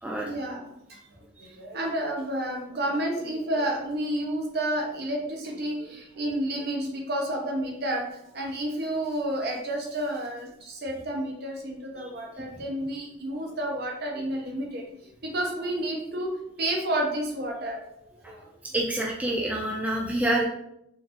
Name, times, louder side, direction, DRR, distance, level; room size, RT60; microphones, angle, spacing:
voice 1, 0.2-17.8 18.2-18.5, right 1 dB, 55° right, 1 dB, 0.9 m, -31 dB
voice 2, 18.7-20.4, right 1 dB, 5° right, -2 dB, 0.4 m, -27 dB
4.5 x 3.4 x 2.9 m, 0.78 s
head